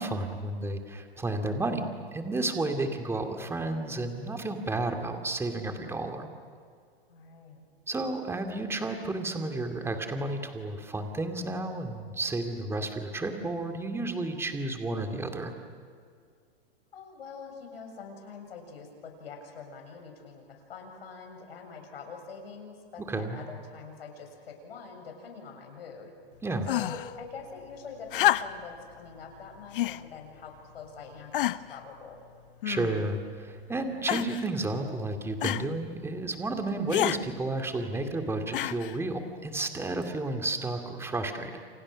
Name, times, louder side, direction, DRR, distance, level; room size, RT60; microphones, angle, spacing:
voice 1, 0.0-6.3 7.9-15.5 23.1-23.4 26.4-26.7 32.6-41.6, right 2 dB, 10° right, 5 dB, 2.5 m, -32 dB
voice 2, 7.1-7.6 16.9-26.1 26.7-32.3, left 5 dB, 75° left, 3 dB, 7.4 m, -45 dB
sound 1, 26.6-27.1 28.1-28.8 29.7-30.0 30.8-30.9 31.3-31.8 32.6-33.2 34.1-34.5 35.4-35.7 36.9-37.2 38.5-39.0 40.0-40.1, left 14 dB, 60° left, 1.0 m, -28 dB
29.5 x 28.5 x 6.5 m, 2.2 s
hypercardioid pair, 130°, 30 cm